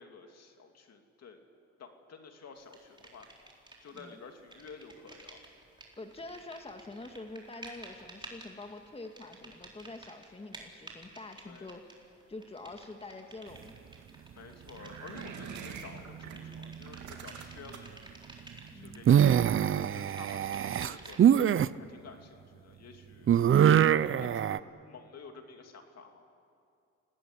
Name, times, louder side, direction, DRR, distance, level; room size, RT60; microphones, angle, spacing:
voice 1, 0.0-1.4 1.8-3.3 3.8-5.4 11.4-11.7 14.3-17.9 18.7-21.3 21.7-26.3, left 5 dB, 55° left, 4 dB, 2.8 m, -51 dB
sound 1, 2.7-4.1 4.4-21.4, right 2 dB, 15° right, 4.4 m, -52 dB
voice 2, 6.0-11.9 12.3-13.7 18.7-19.0, left 2 dB, 20° left, 5 dB, 1.8 m, -46 dB
sound 2, 14.8-16.4 16.8-18.0 19.2-19.7, right 7 dB, 70° right, 2.9 m, -45 dB
sound 3, 15.2-16.0 16.3-16.8 18.9-21.7 23.3-24.6, right 9 dB, 45° right, 0.6 m, -24 dB
25.5 x 18.5 x 9.9 m, 2.5 s
cardioid pair, 90°, 30 cm